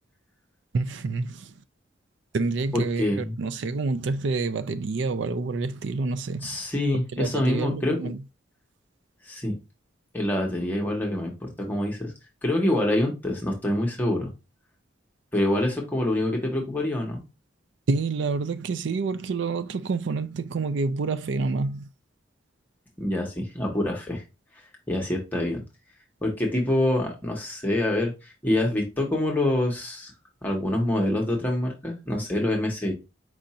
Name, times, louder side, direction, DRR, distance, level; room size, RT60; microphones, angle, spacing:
voice 1, 0.7-1.5 2.3-6.6 7.1-8.2 17.9-21.9, right 4 dB, 65° right, 0.4 m, -28 dB
voice 2, 3.0-3.3 6.4-8.0 9.2-9.5 10.1-12.1 12.4-14.3 15.3-17.2 23.0-24.2 24.9-25.6 26.2-30.1 30.4-32.9, left 1 dB, 10° left, 1.0 m, -26 dB
4.7 x 2.6 x 4.1 m
head